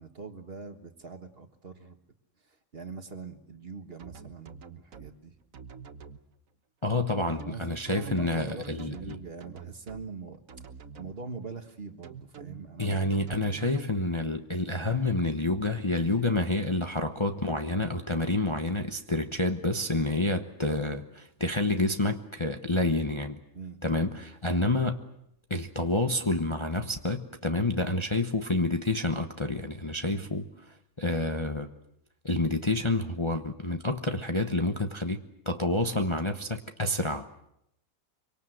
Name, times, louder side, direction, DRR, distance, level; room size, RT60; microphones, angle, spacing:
voice 1, 0.0-2.0 2.4-5.3 7.4-10.4 11.0-13.0 23.5-23.8 30.1-30.3, right 4 dB, 45° right, 1.7 m, -42 dB
sound 1, 4.0-5.1 5.5-6.2 7.1-10.1 10.5-11.1 12.0-13.9, right 6 dB, 65° right, 1.6 m, -45 dB
voice 2, 6.8-9.1 12.8-23.4 23.8-25.0 25.5-30.4 31.0-31.7 32.2-37.3, left 2 dB, 20° left, 1.0 m, -28 dB
24.5 x 24.5 x 7.9 m
omnidirectional pair, 1.5 m